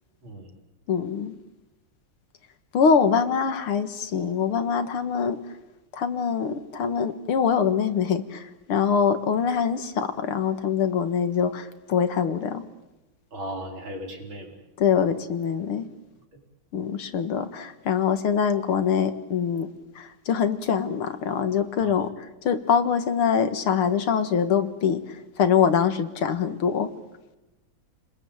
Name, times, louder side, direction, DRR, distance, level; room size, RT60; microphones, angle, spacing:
voice 1, 0.9-1.3 2.7-5.4 5.9-12.6 14.8-15.9 16.7-19.7 20.0-26.9, left 7 dB, 85° left, 2.5 m, -24 dB
voice 2, 13.3-14.6 21.8-21.9, equal, 65° right, 5.4 m, -36 dB
29.5 x 21.0 x 9.0 m
omnidirectional pair, 2.3 m